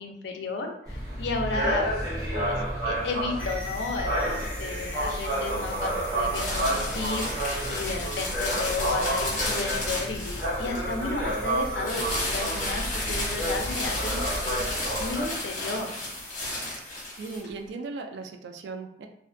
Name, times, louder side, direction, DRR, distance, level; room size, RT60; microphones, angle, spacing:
voice 1, 0.0-2.0 2.3-16.0, left 3 dB, 85° left, 3 dB, 0.4 m, -33 dB
sound 1, 0.9-15.3, right 1 dB, 20° right, 0.6 m, -30 dB
sound 2, 3.4-17.4, left 1 dB, 10° left, 1.0 m, -44 dB
sound 3, 6.3-10.9 11.8-17.5, left 1 dB, 45° left, 0.9 m, -33 dB
voice 2, 17.1-19.1, right 3 dB, 85° right, 5 dB, 0.3 m, -37 dB
2.4 x 2.1 x 2.5 m, 0.76 s
head